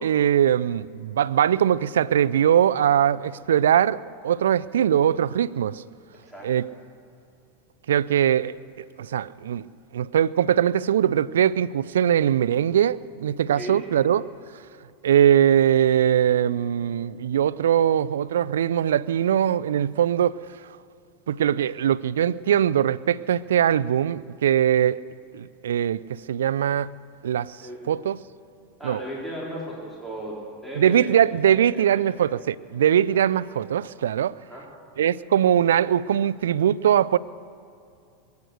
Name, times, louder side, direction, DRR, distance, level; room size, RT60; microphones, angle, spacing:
voice 1, 0.0-5.8 6.4-6.7 7.9-9.7 9.9-14.3 15.0-20.4 21.3-25.0 25.3-26.9 27.2-27.6 27.9-28.2 28.8-29.0 30.8-34.3 35.0-37.2, right 9 dB, 85° right, 0.4 m, -21 dB
voice 2, 6.2-6.7 13.6-13.8 27.6-27.8 28.8-31.2 31.5-32.3 33.1-33.2 34.4-34.7, equal, ahead, 3.9 m, -36 dB
22.5 x 9.4 x 6.4 m
hypercardioid pair, 105°, 0 cm